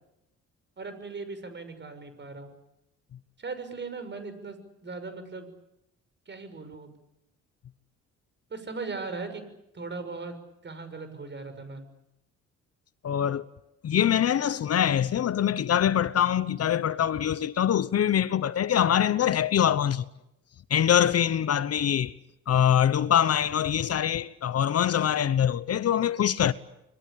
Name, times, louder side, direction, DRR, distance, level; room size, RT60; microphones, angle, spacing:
voice 1, 0.8-2.6 3.4-5.5 6.3-6.9 8.5-9.4 9.7-10.3 10.6-11.8, right 4 dB, 35° right, 6.4 m, -38 dB
voice 2, 13.0-13.5 13.8-20.0 20.7-22.1 22.5-26.5, left 9 dB, 55° left, 1.0 m, -24 dB
26.0 x 22.0 x 8.6 m
cardioid pair, 90°, 30 cm